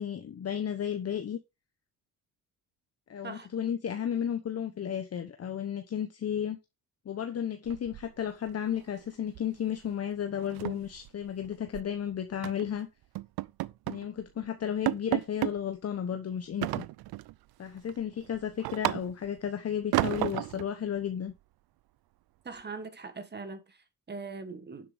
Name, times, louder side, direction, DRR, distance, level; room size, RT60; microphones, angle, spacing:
voice 1, 0.0-1.4 3.1-6.6 7.0-12.9 13.9-16.8 17.6-21.3, left 9 dB, 40° left, 1.0 m, -33 dB
sound 1, 7.7-8.5 8.8-9.0 9.3-9.6 9.8-9.9 10.3-11.9 12.4-12.7 13.2-14.1 14.4-14.5 14.9-15.6 16.6-17.3 17.8-19.4 19.9-20.7, right 16 dB, 75° right, 0.6 m, -32 dB
voice 2, 22.4-24.9, right 4 dB, 25° right, 1.6 m, -41 dB
10.5 x 7.5 x 3.5 m
cardioid pair, 115°, 37 cm